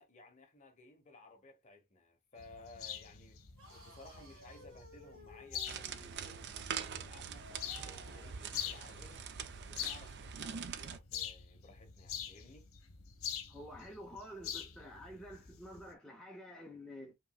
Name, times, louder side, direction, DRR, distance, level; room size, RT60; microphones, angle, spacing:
voice 1, 0.0-3.4 3.7-9.3 9.6-12.7, left 2 dB, 35° left, 1.0 m, -58 dB
sound 1, 2.4-15.9, left 9 dB, 70° left, 1.0 m, -46 dB
sound 2, 3.6-8.5, equal, 75° right, 1.5 m, -57 dB
sound 3, 5.7-11.0, right 7 dB, 50° right, 0.4 m, -44 dB
voice 2, 13.5-17.1, equal, 5° left, 0.7 m, -49 dB
5.1 x 3.0 x 2.3 m
head